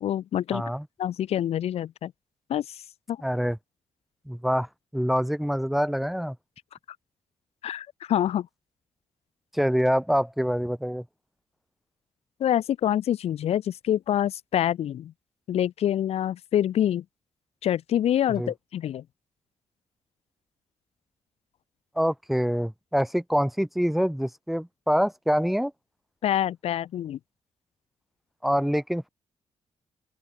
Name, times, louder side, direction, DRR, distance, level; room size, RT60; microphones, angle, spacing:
voice 1, 0.0-0.6 1.0-2.1 2.5-2.8 3.1-3.2 7.6-8.5 12.4-15.1 15.5-17.0 17.6-19.0 26.2-27.2, left 11 dB, 70° left, 1.5 m, -26 dB
voice 2, 0.5-0.8 3.2-3.6 4.3-6.3 9.5-11.0 18.4-18.5 21.9-25.7 28.4-29.1, equal, ahead, 1.6 m, -25 dB
open air
wide cardioid pair, 180°, 11 cm